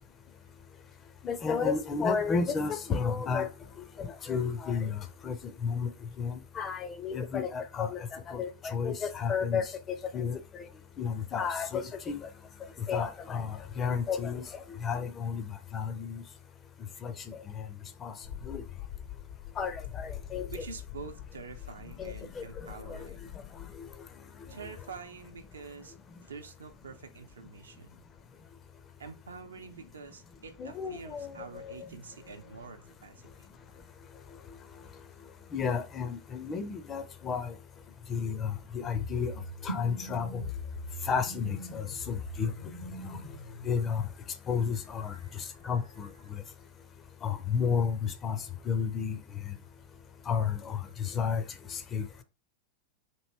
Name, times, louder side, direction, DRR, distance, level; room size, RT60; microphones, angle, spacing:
voice 1, 1.2-3.5 4.0-5.4 5.6-5.9 6.2-10.6 11.0-12.3 12.9-16.2 17.0-17.7 18.0-18.1 18.4-18.6 19.6-20.6 22.0-23.1 23.8-23.9 30.6-31.9 35.5-37.5 38.1-39.3 39.6-40.4 41.1-42.5 43.1-43.2 43.6-44.0 44.5-46.4 47.2-48.4 48.7-49.2 49.5-49.6 50.3-51.4 51.7-52.1, left 6 dB, 25° left, 0.5 m, -32 dB
sound 1, 18.2-24.0, left 10 dB, 60° left, 0.8 m, -44 dB
voice 2, 20.5-23.3 24.5-25.9 26.3-28.0 29.0-33.5 42.5-42.6 45.1-45.5 46.2-46.4, right 5 dB, 70° right, 0.6 m, -47 dB
sound 2, 38.8-43.8, equal, 85° left, 1.2 m, -41 dB
3.0 x 2.8 x 4.3 m
figure-of-eight pair, 90°, 0 cm